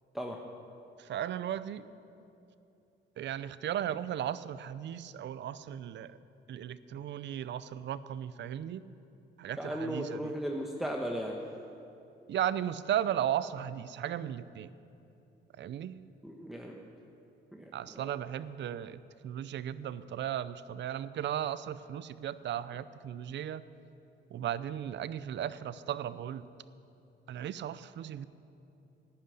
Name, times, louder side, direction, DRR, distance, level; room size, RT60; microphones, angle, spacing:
voice 1, 1.0-1.9 3.2-6.2 6.5-8.8 9.4-10.4 12.3-14.7 15.6-16.0 17.7-23.6 24.3-26.5 27.3-28.3, right 10 dB, 65° right, 15 dB, 0.6 m, -36 dB
voice 2, 9.6-11.4 16.2-16.8 17.5-17.6 17.9-18.1, equal, ahead, 0 dB, 1.2 m, -36 dB
11.5 x 10.0 x 9.5 m, 2.8 s
cardioid pair, 90°, 20 cm